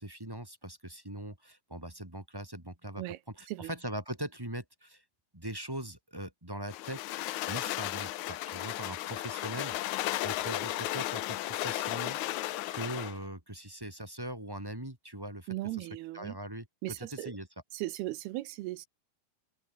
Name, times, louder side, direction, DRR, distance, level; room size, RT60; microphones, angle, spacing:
voice 1, 0.0-3.0 3.4-5.0 5.3-7.0 7.5-12.2 12.7-15.5 15.8-15.9 16.1-17.5, right 1 dB, 5° right, 2.5 m, -41 dB
sound 1, 6.7-13.2, left 15 dB, 85° left, 1.6 m, -34 dB
voice 2, 15.5-16.4 16.8-17.3 17.7-18.9, right 17 dB, 80° right, 2.8 m, -37 dB
omnidirectional pair, 4.6 m